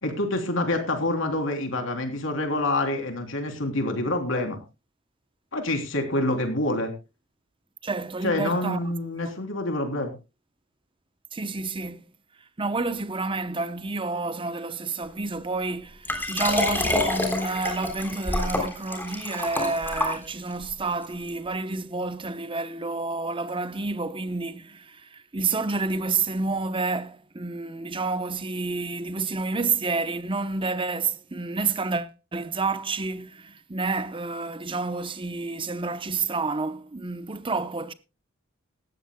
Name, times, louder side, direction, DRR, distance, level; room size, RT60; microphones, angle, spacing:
voice 1, 0.0-4.6 5.5-6.9 8.2-10.1, left 1 dB, 70° left, 3.4 m, -27 dB
voice 2, 7.8-8.9 9.2-9.3 11.3-12.1 12.6-37.9, right 3 dB, 25° right, 0.8 m, -29 dB
Liquid, 16.1-20.6 21.3-21.4, left 2 dB, 10° left, 3.5 m, -27 dB
18.0 x 13.5 x 2.3 m
head